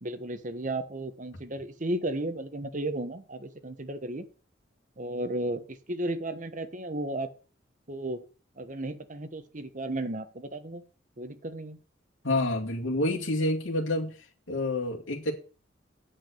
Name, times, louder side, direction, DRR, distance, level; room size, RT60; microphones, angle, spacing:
voice 1, 0.0-4.3 5.0-7.3 7.9-8.2 8.6-10.8 11.2-11.8, right 1 dB, 40° right, 1.2 m, -34 dB
voice 2, 12.2-14.2 14.5-15.3, left 2 dB, 80° left, 2.4 m, -28 dB
8.9 x 7.6 x 6.7 m
head